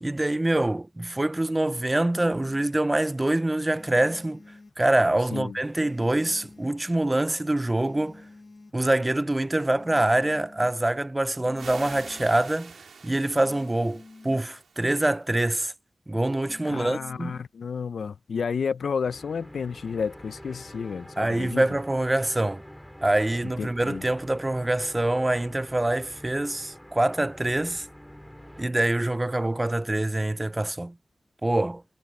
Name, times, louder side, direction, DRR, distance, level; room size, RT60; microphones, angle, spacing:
voice 1, 0.0-4.4 4.8-8.2 8.7-12.7 13.0-15.7 16.1-17.4 21.2-22.6 23.0-27.9 28.6-31.0 31.4-31.8, right 1 dB, 20° right, 0.4 m, -25 dB
sound 1, 2.1-2.7 3.7-4.7 5.7-6.8 7.7-8.8 9.7-10.8 11.4-12.4 13.4-14.4 16.4-17.5, left 3 dB, 50° left, 0.8 m, -49 dB
sound 2, 11.6-15.2, right 5 dB, 85° right, 3.8 m, -46 dB
voice 2, 16.7-21.7 23.6-24.0, left 6 dB, 85° left, 0.5 m, -31 dB
sound 3, 19.0-28.7, equal, 5° left, 4.1 m, -46 dB
cardioid pair, 60°, 0 cm